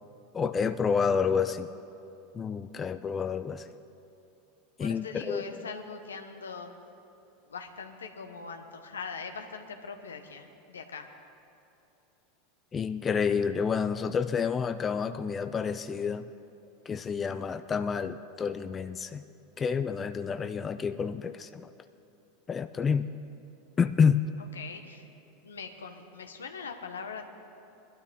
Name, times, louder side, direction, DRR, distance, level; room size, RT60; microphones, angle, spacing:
voice 1, 0.3-1.7 2.3-3.7 4.8-5.6 12.7-16.3 16.9-19.2 19.6-21.7 22.5-23.1 23.8-24.2, left 6 dB, 25° left, 10 dB, 0.4 m, -29 dB
voice 2, 4.8-6.7 7.5-11.1 24.5-25.1 25.4-27.3, left 5 dB, 90° left, 6 dB, 1.1 m, -41 dB
21.0 x 12.5 x 3.7 m, 2.8 s
hypercardioid pair, 95°, 0 cm